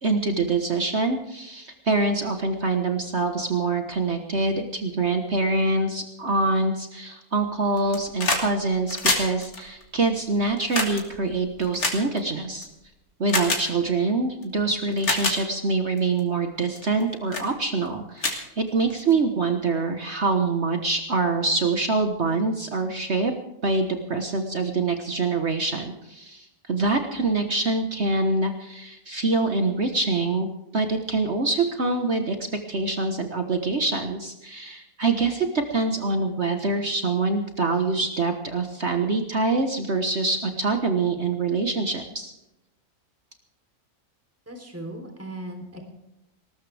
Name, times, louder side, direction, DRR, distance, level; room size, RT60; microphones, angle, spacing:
voice 1, 0.0-12.7 13.2-23.3 23.6-30.5 30.7-32.4 32.7-42.3, right 3 dB, 50° right, 5 dB, 1.6 m, -25 dB
sound 1, 7.8-8.5 8.8-12.6 13.3-13.6 14.4-14.5 14.9-15.4 16.0-16.2 16.8-17.0 17.3-17.5 17.9-18.0 18.2-19.1 20.3-20.4, left 3 dB, 80° left, 3.4 m, -27 dB
voice 2, 44.5-45.8, right 1 dB, 10° right, 3 dB, 3.5 m, -37 dB
20.0 x 19.0 x 3.5 m, 0.89 s
omnidirectional pair, 1.5 m